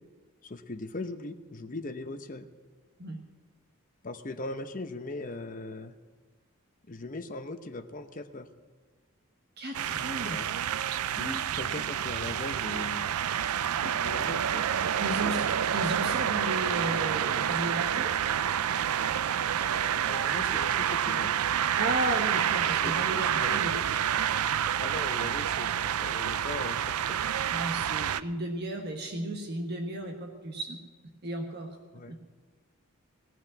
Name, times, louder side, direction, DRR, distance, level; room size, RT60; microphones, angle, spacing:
voice 1, 0.4-2.5 4.0-5.9 6.9-8.5 10.2-10.5 11.1-13.1 13.6-14.6 15.0-15.3 19.7-21.3 22.8-23.8 24.8-27.2 31.9-32.1, left 2 dB, 35° left, 8 dB, 0.8 m, -40 dB
voice 2, 9.6-10.5 11.1-11.4 13.8-13.9 15.0-15.4 15.7-18.1 21.7-23.9 24.5-24.7 27.5-30.8 31.2-31.7 32.1-32.2, right 1 dB, 45° right, 3 dB, 1.3 m, -34 dB
sound 1, 9.7-28.2, right 9 dB, 85° right, 0.4 m, -28 dB
18.5 x 6.3 x 9.0 m, 1.4 s
head